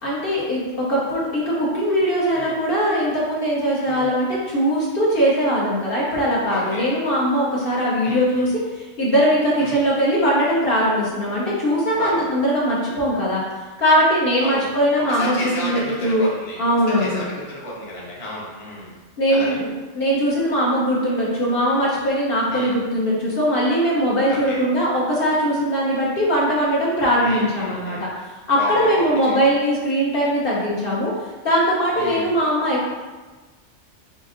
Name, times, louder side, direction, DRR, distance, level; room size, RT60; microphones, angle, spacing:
voice 1, 0.0-13.4 13.8-16.3 16.6-17.3 19.2-19.7 19.9-28.0 28.5-31.1 31.4-32.9, equal, 55° left, -5 dB, 0.9 m, -20 dB
voice 2, 6.5-6.9 8.0-8.5 9.6-9.8 11.9-12.2 14.4-14.7 15.0-19.0 19.3-19.6 22.5-22.8 24.2-24.6 27.2-28.1 28.5-29.3 31.9-32.3, equal, 30° left, -5 dB, 0.7 m, -32 dB
5.0 x 2.5 x 2.5 m, 1.3 s
omnidirectional pair, 1.2 m